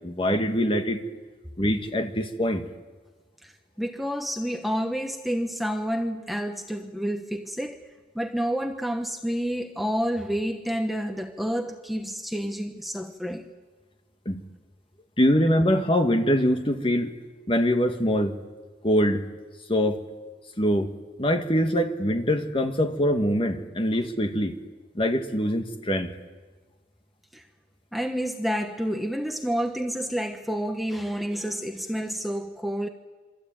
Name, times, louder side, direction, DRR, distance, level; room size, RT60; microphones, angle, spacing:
voice 1, 0.0-1.0 1.6-2.6 14.2-14.4 15.2-17.1 17.5-18.4 18.8-19.2 19.7-20.0 20.6-20.9 21.2-24.6 24.9-26.1, equal, 30° left, 1.7 m, -23 dB
voice 2, 3.4-7.8 8.1-13.5 27.3-27.5 27.9-32.9, equal, ahead, 1.0 m, -29 dB
26.5 x 24.5 x 9.0 m
head